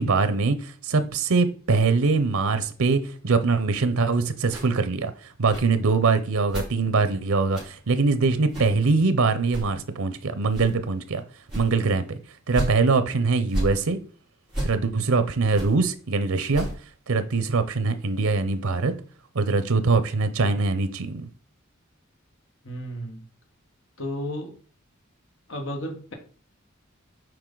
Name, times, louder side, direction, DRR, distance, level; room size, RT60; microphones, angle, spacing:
voice 1, 0.0-11.2 11.5-12.2 12.5-14.0 14.6-16.7 17.1-18.9 19.3-21.3, right 4 dB, 85° right, 0.7 m, -23 dB
sound 1, 4.5-4.7 5.5-5.7 6.5-6.7 7.5-7.7 8.5-8.7 9.5-9.7 10.5-10.7 11.5-11.7 12.5-12.7 13.5-13.7 14.5-14.7 15.5-15.7 16.5-16.7, right 1 dB, 5° right, 4.0 m, -31 dB
voice 2, 22.6-23.2 24.0-24.5 25.5-26.1, equal, 65° left, 1.5 m, -33 dB
7.8 x 4.7 x 3.9 m
head